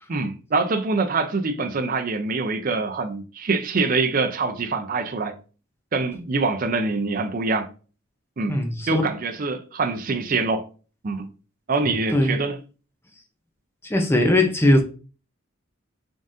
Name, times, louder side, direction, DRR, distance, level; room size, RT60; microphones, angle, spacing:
voice 1, 0.1-5.3 5.9-7.7 8.4-8.6 8.9-10.7 11.0-11.3 11.7-12.6, right 3 dB, 45° right, 0.5 m, -24 dB
voice 2, 8.5-9.0 11.9-12.4 13.8-14.8, left 1 dB, 10° left, 0.5 m, -20 dB
3.8 x 3.5 x 2.5 m
head